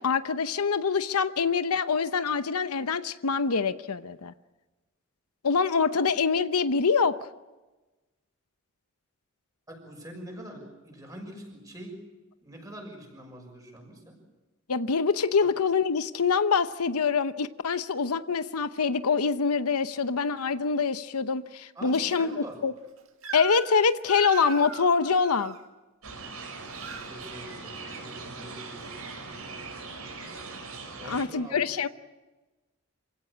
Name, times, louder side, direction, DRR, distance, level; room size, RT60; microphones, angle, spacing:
voice 1, 0.0-4.3 5.4-7.3 14.7-22.7 23.3-25.5 31.0-31.9, left 5 dB, 90° left, 12 dB, 0.8 m, -25 dB
voice 2, 9.7-12.0 12.4-14.2 15.4-15.5 21.7-22.6 26.8-29.4 31.0-31.9, right 1 dB, 15° right, 1 dB, 6.3 m, -45 dB
Crying sobbing / Screech, 23.2-23.8 24.1-25.6 26.4-27.1, right 4 dB, 65° right, 2.1 m, -38 dB
sound 1, 26.0-31.3, right 4 dB, 85° right, 5.2 m, -40 dB
27.5 x 16.5 x 8.6 m, 1.2 s
head